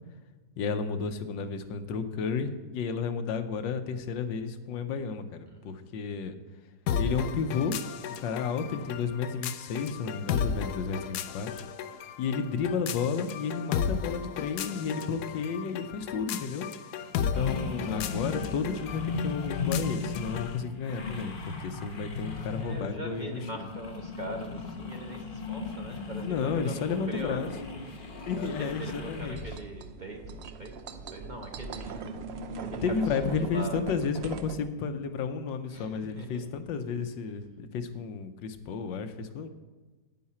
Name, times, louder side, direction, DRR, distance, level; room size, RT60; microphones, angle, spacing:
voice 1, 0.6-6.3 7.0-7.7 8.1-11.6 12.2-16.6 17.2-23.4 26.2-27.5 28.2-29.4 32.8-39.5, left 5 dB, 90° left, 9 dB, 1.5 m, -32 dB
voice 2, 5.5-5.9 17.0-17.4 22.6-32.0 32.3-33.8 35.7-36.5, right 1 dB, 30° right, 1 dB, 0.9 m, -42 dB
sound 1, 6.9-20.6, left 7 dB, 70° left, 1.1 m, -35 dB
sound 2, 17.3-29.6, left 4 dB, 35° left, 0.9 m, -37 dB
sound 3, 29.4-34.6, right 4 dB, 75° right, 0.6 m, -40 dB
9.7 x 9.6 x 4.3 m, 1.3 s
omnidirectional pair, 1.9 m